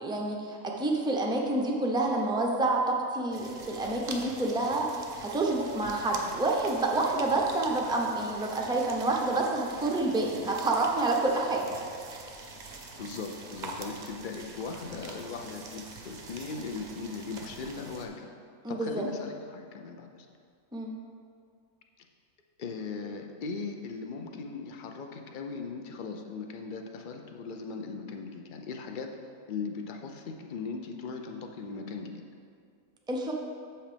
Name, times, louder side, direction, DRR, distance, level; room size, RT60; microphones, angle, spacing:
voice 1, 0.0-4.9 5.2-11.7 12.1-12.2 18.6-19.0 20.7-20.9 33.1-33.3, right 2 dB, 5° right, -1 dB, 0.3 m, -28 dB
sound 1, 3.3-18.1, right 3 dB, 45° right, 0.6 m, -45 dB
voice 2, 13.0-18.1 18.7-20.3 22.6-29.1 29.5-32.2, left 4 dB, 55° left, 4 dB, 0.5 m, -38 dB
7.3 x 5.8 x 5.1 m, 2.2 s
omnidirectional pair, 1.5 m